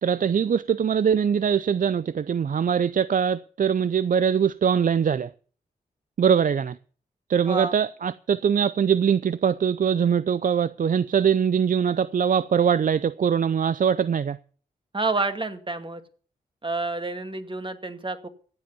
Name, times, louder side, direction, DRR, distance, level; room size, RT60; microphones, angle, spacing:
voice 1, 0.0-5.3 6.2-6.8 7.3-14.4, right 7 dB, 50° right, 0.5 m, -22 dB
voice 2, 14.9-16.0 16.6-18.3, right 3 dB, 30° right, 2.1 m, -29 dB
15.0 x 7.8 x 6.9 m
supercardioid pair, 40°, 17 cm